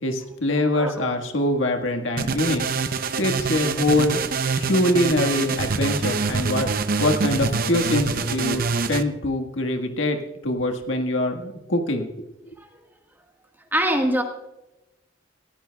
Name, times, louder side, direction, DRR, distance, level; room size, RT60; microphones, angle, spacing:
voice 1, 0.0-2.6 3.2-4.2 4.6-6.7 7.0-10.2 10.4-12.1, left 1 dB, 80° left, 4 dB, 1.6 m, -24 dB
sound 1, 2.2-9.0, right 4 dB, 50° right, 0.6 m, -25 dB
voice 2, 13.7-14.2, right 1 dB, 10° right, 3 dB, 1.5 m, -22 dB
19.5 x 15.0 x 2.3 m, 0.99 s
head